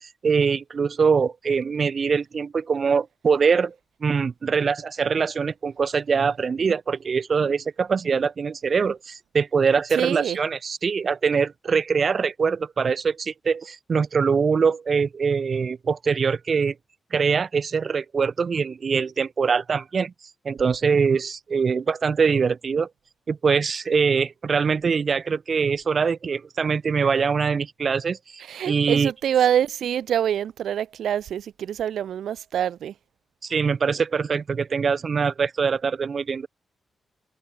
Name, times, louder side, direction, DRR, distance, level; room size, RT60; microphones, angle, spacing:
voice 1, 0.0-3.7 4.0-16.7 17.1-20.1 20.4-22.9 23.3-29.1 33.4-36.5, right 5 dB, 40° right, 0.5 m, -23 dB
voice 2, 10.0-10.4 28.4-32.9, right 9 dB, 90° right, 2.4 m, -25 dB
wide cardioid pair, 170°, 0 cm